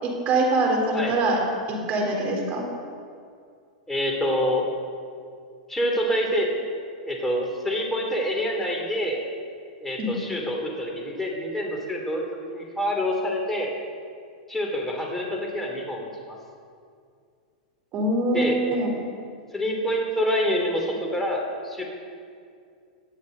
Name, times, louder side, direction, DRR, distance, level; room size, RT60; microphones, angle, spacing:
voice 1, 0.0-1.4 1.7-2.6 10.0-10.1 17.9-18.9, right 2 dB, 40° right, 0 dB, 4.3 m, -24 dB
voice 2, 3.9-4.7 5.7-6.5 7.0-9.2 9.8-12.2 12.5-13.7 14.5-16.4 18.3-18.6 19.5-21.8, equal, 10° left, 0 dB, 3.4 m, -26 dB
19.0 x 12.0 x 4.2 m, 2.2 s
hypercardioid pair, 110°, 4 cm